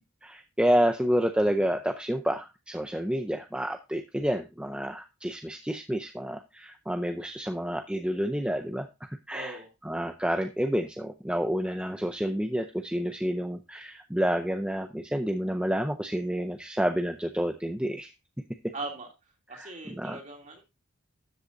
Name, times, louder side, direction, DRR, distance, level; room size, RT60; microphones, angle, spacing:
voice 1, 0.2-9.6 9.8-18.1 19.5-20.2, equal, 5° right, 5 dB, 0.5 m, -29 dB
voice 2, 9.3-9.7 18.7-19.1 19.5-20.6, right 2 dB, 35° right, 1 dB, 2.8 m, -39 dB
13.0 x 8.0 x 2.6 m, 0.25 s
head